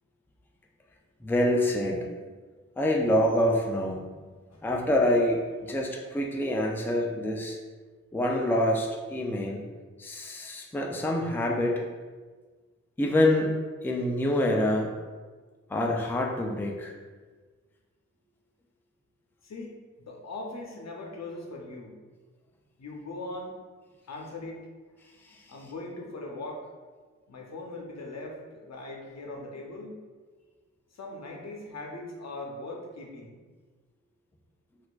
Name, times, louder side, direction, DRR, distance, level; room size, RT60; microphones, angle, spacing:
voice 1, 1.2-2.1 2.8-4.0 4.6-7.6 8.1-9.6 10.0-11.8 13.0-13.5 13.8-14.9 15.7-16.9 25.2-25.4, left 1 dB, 5° left, 0 dB, 0.4 m, -26 dB
voice 2, 19.4-22.0 22.8-23.6 24.1-24.6 25.5-26.7 27.3-30.0 30.9-33.4, left 2 dB, 60° left, -1 dB, 0.7 m, -40 dB
4.2 x 2.5 x 2.4 m, 1.4 s
cardioid pair, 55°, 30 cm